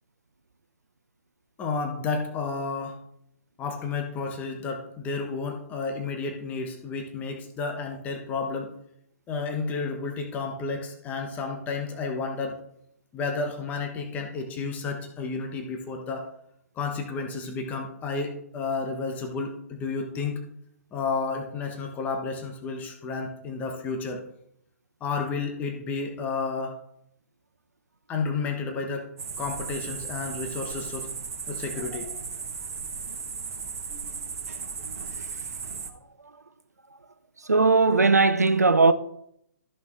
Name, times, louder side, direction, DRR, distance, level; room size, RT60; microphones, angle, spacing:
voice 1, 1.6-3.0 3.6-8.7 9.3-12.6 13.1-16.3 16.8-20.4 20.9-24.2 25.0-26.8 28.1-29.1 29.4-31.1 31.5-32.1, left 4 dB, 20° left, 1.3 m, -31 dB
sound 1, 29.2-35.9, right 5 dB, 55° right, 1.5 m, -36 dB
voice 2, 37.5-38.9, right 3 dB, 80° right, 0.6 m, -18 dB
13.5 x 6.0 x 3.7 m
figure-of-eight pair, 120°, 9 cm